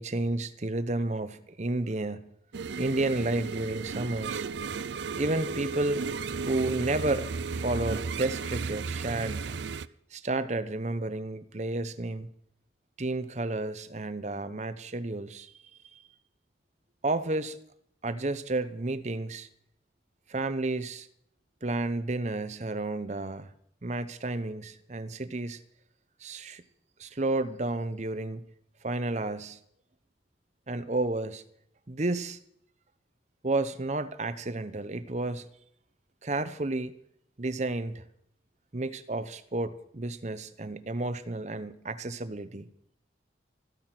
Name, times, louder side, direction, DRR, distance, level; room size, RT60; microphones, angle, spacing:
voice 1, 0.0-2.3 2.8-4.4 5.2-6.1 6.5-7.3 7.5-9.6 10.1-12.3 13.0-15.5 15.9-16.0 17.0-17.6 18.0-19.5 20.3-21.1 21.6-23.5 23.8-25.6 26.2-26.6 27.0-28.4 28.8-29.6 30.7-31.4 31.9-32.4 33.4-35.5 36.2-36.9 37.4-38.0 38.7-42.7, right 2 dB, 40° right, 13 dB, 0.9 m, -31 dB
sound 1, 2.5-9.9, right 5 dB, 75° right, 0.5 m, -34 dB
14.5 x 13.0 x 6.0 m, 0.72 s
head